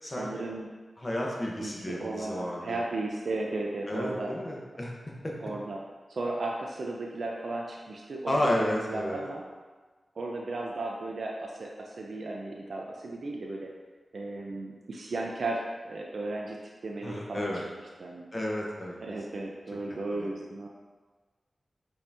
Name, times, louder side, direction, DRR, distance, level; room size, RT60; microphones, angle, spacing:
voice 1, 0.1-0.7 1.6-4.3 5.4-5.8 6.1-9.4 10.2-13.7 14.1-16.6 16.8-17.6 18.0-18.2 19.0-20.7, right 2 dB, 70° right, -1 dB, 0.4 m, -35 dB
voice 2, 1.0-2.8 3.9-4.9 5.2-5.3 8.3-9.2 17.0-17.6 18.3-19.0 19.9-20.4, left 1 dB, 30° left, -2 dB, 0.9 m, -32 dB
5.3 x 2.7 x 3.4 m, 1.4 s
wide cardioid pair, 85°, 0 cm